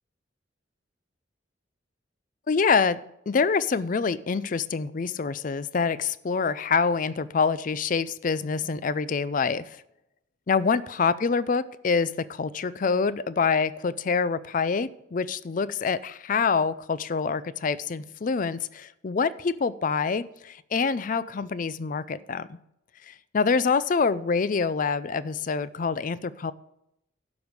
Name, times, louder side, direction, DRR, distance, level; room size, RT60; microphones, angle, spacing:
voice 1, 2.5-3.0 3.3-9.7 10.5-22.5 23.3-26.5, left 5 dB, 45° left, 17 dB, 0.4 m, -26 dB
12.0 x 5.2 x 6.4 m, 0.82 s
head